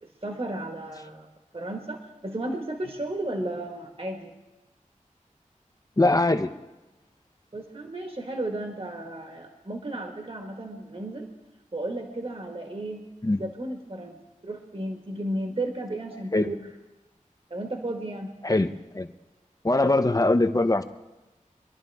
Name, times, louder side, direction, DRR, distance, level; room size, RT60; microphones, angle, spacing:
voice 1, 0.0-1.3 1.5-4.3 7.5-11.3 11.7-13.1 13.4-16.6 17.5-18.3 19.8-19.9, right 1 dB, 45° right, 2 dB, 1.6 m, -34 dB
voice 2, 6.0-6.5 13.2-13.4 16.3-16.5 18.4-19.1 19.6-20.8, left 2 dB, 25° left, 9 dB, 0.8 m, -22 dB
24.0 x 11.5 x 3.5 m, 1.0 s
wide cardioid pair, 65°, 14 cm